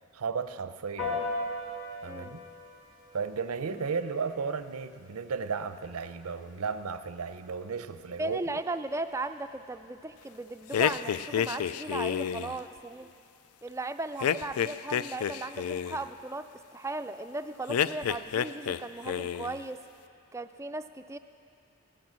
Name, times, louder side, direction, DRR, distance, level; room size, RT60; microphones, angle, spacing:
voice 1, 0.1-1.2 2.0-2.4 3.1-8.4, right 5 dB, 85° right, 11 dB, 0.6 m, -34 dB
Piano, 1.0-10.7, left 2 dB, 70° left, 4.8 m, -42 dB
voice 2, 8.2-13.1 13.6-19.8 20.3-21.2, right 2 dB, 15° right, 9 dB, 0.3 m, -37 dB
sound 1, 10.7-12.6 14.2-16.0 17.7-18.8 19.1-19.6, left 8 dB, 90° left, 0.4 m, -29 dB
14.5 x 12.0 x 7.4 m, 2.5 s
head